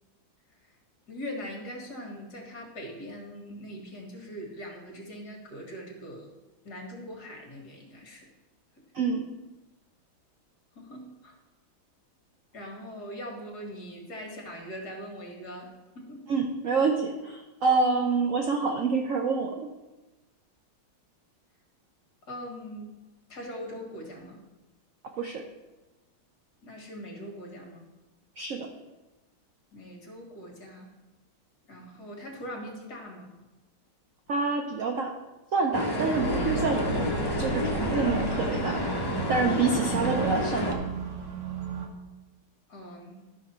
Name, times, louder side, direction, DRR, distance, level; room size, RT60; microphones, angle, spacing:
voice 1, 1.1-6.3 6.7-8.3 10.8-11.4 12.5-16.2 22.2-23.0 23.3-24.4 26.6-27.9 29.7-30.9 31.7-33.3 42.7-43.2, equal, 55° left, 1 dB, 2.1 m, -41 dB
voice 2, 8.9-9.3 16.3-19.7 25.2-25.4 28.4-28.7 34.3-35.1 35.5-38.8 39.3-40.8, right 4 dB, 65° right, 3 dB, 0.8 m, -27 dB
sound 1, 35.7-40.7, left 1 dB, 30° left, 0.4 m, -29 dB
sound 2, 36.2-41.9, right 5 dB, 50° right, 1.1 m, -35 dB
12.5 x 6.0 x 4.3 m, 1.1 s
omnidirectional pair, 2.2 m